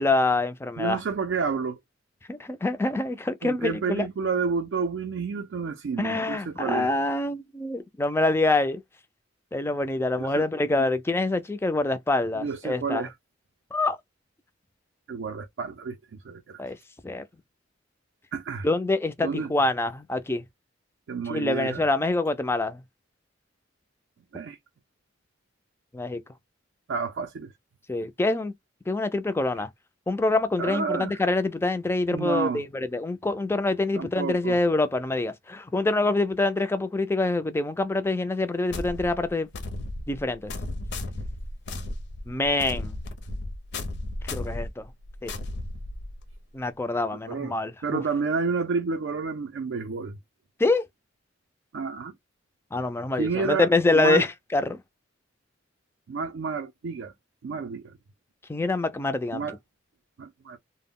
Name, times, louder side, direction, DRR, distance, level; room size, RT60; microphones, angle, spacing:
voice 1, 0.0-1.0 2.3-4.1 6.0-8.8 9.5-13.1 13.7-14.0 16.6-16.8 17.0-17.2 18.6-20.4 21.3-22.8 25.9-26.2 27.9-28.5 28.9-29.7 30.1-39.5 40.1-40.5 42.3-42.9 44.2-44.9 45.2-45.3 46.5-48.0 50.6-50.8 52.7-54.8 58.5-59.4, left 2 dB, 10° left, 0.3 m, -25 dB
voice 2, 0.8-1.8 3.4-6.9 10.2-10.4 10.8-10.9 12.4-13.1 15.1-16.6 18.3-18.7 19.2-19.5 21.1-21.9 24.3-24.6 26.9-27.5 30.6-31.1 32.1-32.6 34.0-34.6 47.3-47.5 47.8-50.2 51.7-52.1 53.2-54.2 56.1-57.1 57.4-57.9 59.3-59.6 60.2-60.6, right 5 dB, 65° right, 0.4 m, -30 dB
sound 1, 38.7-46.4, left 2 dB, 65° left, 0.5 m, -35 dB
2.1 x 2.0 x 3.5 m
head